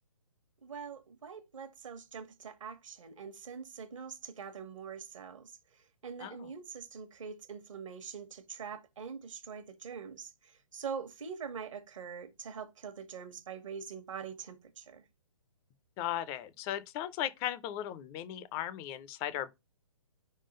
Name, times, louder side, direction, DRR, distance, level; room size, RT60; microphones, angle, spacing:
voice 1, 0.6-15.1, right 6 dB, 60° right, 1.2 m, -44 dB
voice 2, 16.0-19.6, left 12 dB, 15° left, 0.4 m, -37 dB
5.0 x 3.7 x 5.1 m
figure-of-eight pair, 140°, 18 cm